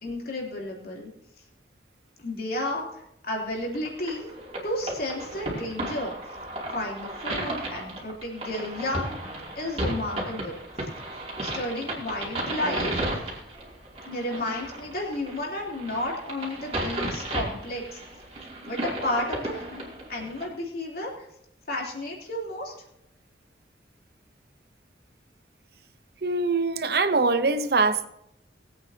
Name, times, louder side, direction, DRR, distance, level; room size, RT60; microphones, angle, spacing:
voice 1, 0.0-1.1 2.2-4.3 4.6-6.1 6.7-9.2 9.6-10.5 11.4-13.0 14.0-18.0 18.7-19.8 20.1-21.3 21.7-22.7, left 1 dB, 55° left, -2 dB, 3.4 m, -32 dB
sound 1, 3.7-20.5, right 1 dB, 30° right, 2.9 m, -34 dB
voice 2, 26.2-28.1, right 3 dB, 55° right, 11 dB, 0.8 m, -23 dB
20.5 x 8.6 x 2.8 m, 0.79 s
head